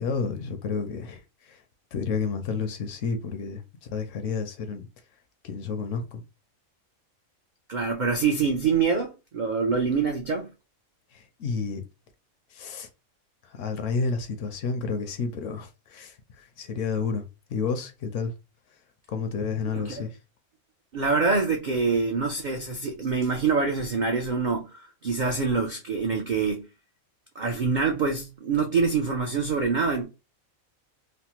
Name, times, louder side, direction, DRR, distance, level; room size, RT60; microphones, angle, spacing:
voice 1, 0.0-1.6 1.9-4.9 5.4-6.2 11.1-11.8 12.5-12.9 13.4-17.2 17.5-18.3 19.1-20.2, left 5 dB, 70° left, 0.9 m, -31 dB
voice 2, 7.7-10.5 19.7-20.1 20.9-26.6 27.4-30.0, right 4 dB, 75° right, 0.4 m, -25 dB
3.3 x 2.0 x 2.8 m
omnidirectional pair, 1.5 m